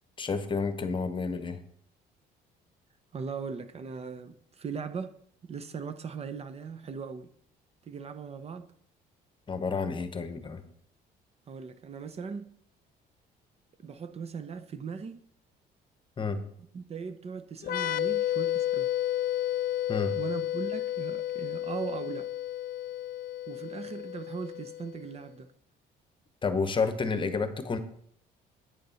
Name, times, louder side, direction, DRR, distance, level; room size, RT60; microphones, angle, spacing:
voice 1, 0.2-1.6 9.5-10.6 16.2-16.4 19.9-20.1 26.4-27.8, left 4 dB, 30° left, 1.1 m, -30 dB
voice 2, 3.1-7.3 7.8-8.7 11.5-12.5 13.8-15.2 16.7-18.9 20.2-22.3 23.5-25.5, right 5 dB, 40° right, 0.8 m, -39 dB
sound 1, 17.6-25.1, left 12 dB, 55° left, 0.5 m, -32 dB
9.3 x 6.6 x 5.7 m
cardioid pair, 110°, 17 cm